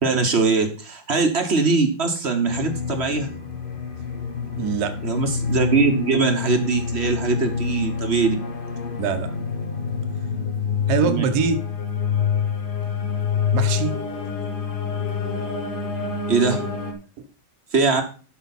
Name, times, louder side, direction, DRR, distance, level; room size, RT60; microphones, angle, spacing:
voice 1, 0.0-3.3 5.0-8.3 11.0-11.2 16.3-16.6 17.7-18.0, right 4 dB, 40° right, 5 dB, 1.2 m, -21 dB
sound 1, 2.4-16.9, left 6 dB, 40° left, 0.8 m, -27 dB
voice 2, 4.5-5.0 9.0-9.3 10.9-11.6 13.5-14.0 17.2-17.3, right 6 dB, 55° right, 7 dB, 1.4 m, -23 dB
12.5 x 5.1 x 4.1 m, 0.37 s
omnidirectional pair, 2.2 m